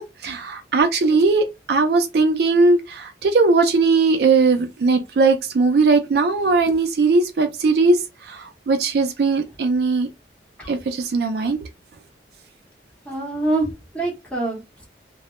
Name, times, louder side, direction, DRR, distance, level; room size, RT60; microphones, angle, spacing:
voice 1, 0.0-10.1 10.7-11.6, right 3 dB, 60° right, 0.4 m, -19 dB
voice 2, 13.1-14.9, right 2 dB, 5° left, 0.7 m, -25 dB
2.2 x 2.0 x 2.9 m
head